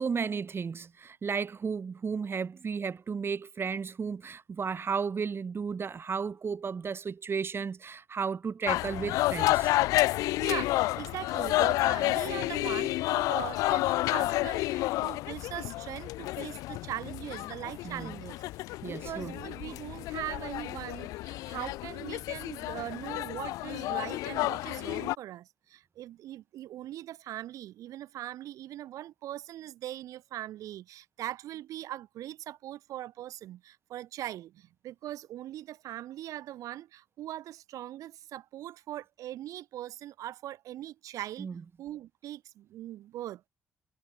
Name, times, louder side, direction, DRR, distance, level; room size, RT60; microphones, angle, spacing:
voice 1, 0.0-9.7 17.8-18.1 18.8-19.4 41.4-41.6, right 5 dB, 45° right, 1.7 m, -34 dB
sound 1, 8.7-25.1, left 18 dB, 75° left, 0.5 m, -30 dB
voice 2, 10.4-18.4 18.9-41.5 41.8-43.4, right 13 dB, 70° right, 3.8 m, -41 dB
hypercardioid pair, 50°, 6 cm